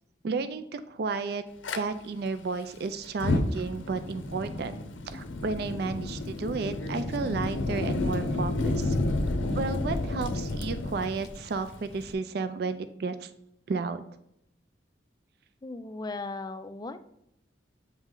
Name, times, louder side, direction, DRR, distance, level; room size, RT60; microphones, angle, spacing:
voice 1, 0.2-1.4 1.8-4.7 5.1-9.0 9.5-13.3 13.7-14.0, right 4 dB, 55° right, 10 dB, 0.3 m, -32 dB
Fire, 1.6-1.8 3.1-12.1, left 2 dB, 85° left, 0.6 m, -31 dB
voice 2, 15.6-17.2, left 3 dB, 20° left, 10 dB, 0.3 m, -37 dB
8.1 x 3.1 x 3.7 m, 0.78 s
head